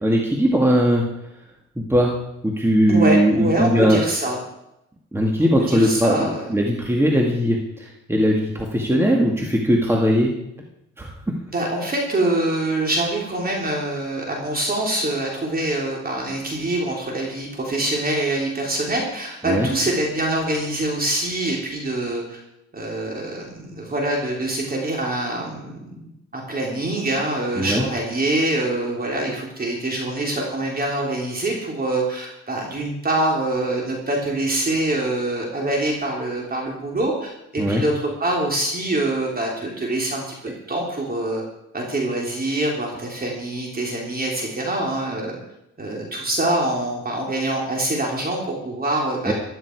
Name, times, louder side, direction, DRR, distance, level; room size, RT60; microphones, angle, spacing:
voice 1, 0.0-1.0 1.8-2.1 2.4-4.0 5.1-10.3 11.0-11.1 19.4-19.7 27.6-27.8 37.6-37.8 49.3-49.4, equal, 10° right, 0 dB, 2.2 m, -19 dB
voice 2, 2.9-4.4 5.4-6.5 11.5-22.4 22.7-26.0 26.3-40.4 40.7-41.4 41.7-45.4 45.8-49.3, right 1 dB, 30° right, -1 dB, 3.9 m, -24 dB
15.5 x 13.0 x 4.8 m, 0.85 s
cardioid pair, 90°, 30 cm